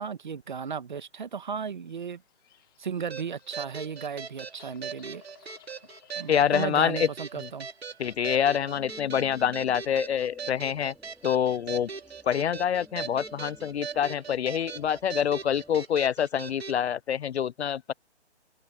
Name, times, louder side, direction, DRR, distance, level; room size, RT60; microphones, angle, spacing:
voice 1, 0.0-2.2 2.8-5.2 6.1-7.7, right 6 dB, 45° right, 1.5 m, -35 dB
Bird vocalization bird call bird song, 1.6-8.3, left 14 dB, 20° left, 3.1 m, -60 dB
sound 1, 3.1-16.8, right 6 dB, 65° right, 2.5 m, -40 dB
voice 2, 6.3-7.1 7.4-7.5 8.0-10.9 11.2-11.9 12.2-17.9, left 9 dB, 70° left, 0.5 m, -26 dB
sound 2, 8.0-15.7, equal, ahead, 3.5 m, -55 dB
hypercardioid pair, 175°, 34 cm